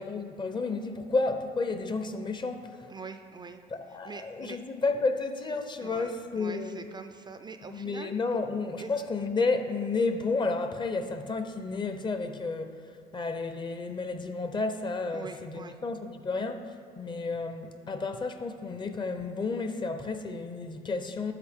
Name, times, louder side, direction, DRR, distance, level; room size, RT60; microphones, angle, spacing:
voice 1, 0.0-2.9 3.7-6.8 7.7-21.3, left 3 dB, 25° left, 8 dB, 0.6 m, -31 dB
voice 2, 2.9-3.6 4.0-4.6 5.8-8.1 8.8-8.9 15.1-15.8, right 5 dB, 25° right, 8 dB, 0.3 m, -44 dB
9.6 x 6.1 x 3.5 m, 2.3 s
cardioid pair, 110°, 17 cm